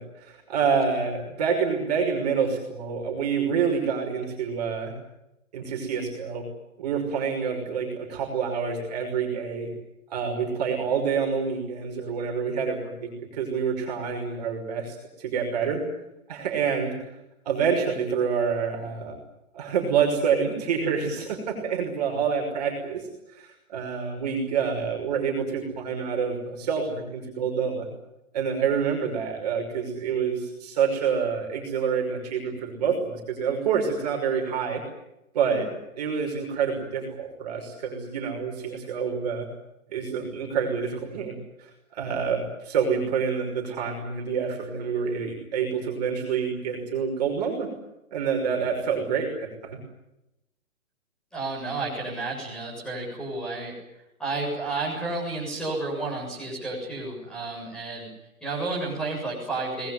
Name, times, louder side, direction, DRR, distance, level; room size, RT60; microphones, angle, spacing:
voice 1, 0.0-4.9 5.5-6.4 6.8-9.7 10.1-15.8 16.3-17.0 17.4-19.2 19.5-23.0 23.3-27.9 28.3-34.8 35.3-35.7 36.0-39.5 39.9-41.3 41.6-47.7 48.1-49.8, right 6 dB, 30° right, 0 dB, 5.8 m, -27 dB
voice 2, 51.3-53.7 54.2-58.1 58.4-59.9, right 3 dB, ahead, -3 dB, 7.3 m, -31 dB
25.5 x 21.0 x 9.9 m, 0.91 s
hypercardioid pair, 175°, 42 cm